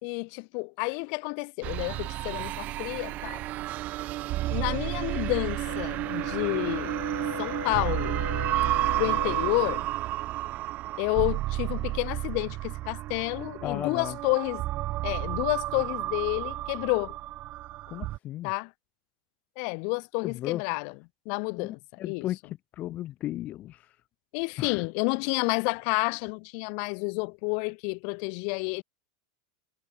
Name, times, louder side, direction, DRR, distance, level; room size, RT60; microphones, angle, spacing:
voice 1, 0.0-3.4 4.5-7.0 7.4-8.2 9.0-9.9 11.0-14.6 15.0-17.1 18.4-18.7 19.6-20.9 21.3-22.3 24.3-28.8, left 40 dB or more, 55° left, 4.3 m, -30 dB
sound 1, 1.6-18.2, right 16 dB, 45° right, 1.0 m, -31 dB
Brass instrument, 5.6-9.9, left 8 dB, 90° left, 5.6 m, -39 dB
voice 2, 13.6-14.2 17.9-18.5 20.2-20.6 21.6-24.0 24.6-24.9, left 14 dB, 40° left, 1.9 m, -35 dB
hypercardioid pair, 105°, 4 cm